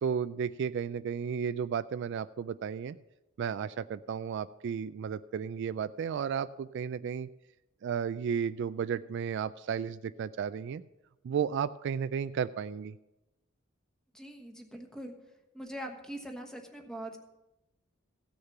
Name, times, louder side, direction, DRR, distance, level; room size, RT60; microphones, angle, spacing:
voice 1, 0.0-3.0 3.4-7.3 7.8-10.8 11.2-12.9, right 7 dB, 60° right, 14 dB, 0.3 m, -33 dB
voice 2, 14.1-15.1 15.5-17.2, right 1 dB, 5° left, 3 dB, 1.2 m, -42 dB
15.5 x 6.5 x 5.9 m, 0.97 s
head